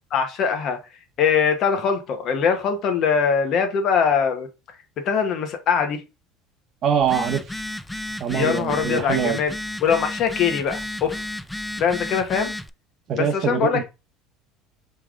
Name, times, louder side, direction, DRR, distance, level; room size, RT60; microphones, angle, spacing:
voice 1, 0.1-0.8 1.2-4.5 5.0-6.0 8.3-9.5 9.8-11.2 11.8-12.5 13.1-13.8, left 6 dB, 50° left, 1.1 m, -22 dB
voice 2, 6.8-7.4 8.2-9.4 13.1-13.8, right 7 dB, 45° right, 0.9 m, -23 dB
Telephone, 7.0-12.7, left 1 dB, 5° left, 0.3 m, -32 dB
3.4 x 3.4 x 3.7 m
supercardioid pair, 120°, 0 cm